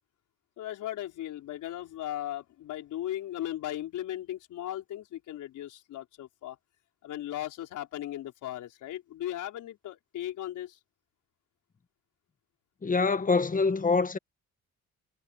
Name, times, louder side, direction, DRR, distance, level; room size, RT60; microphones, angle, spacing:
voice 1, 0.6-6.6 7.0-10.8, left 13 dB, 80° left, 4.7 m, -37 dB
voice 2, 12.8-14.2, left 4 dB, 25° left, 1.4 m, -25 dB
cardioid pair, 90°, 30 cm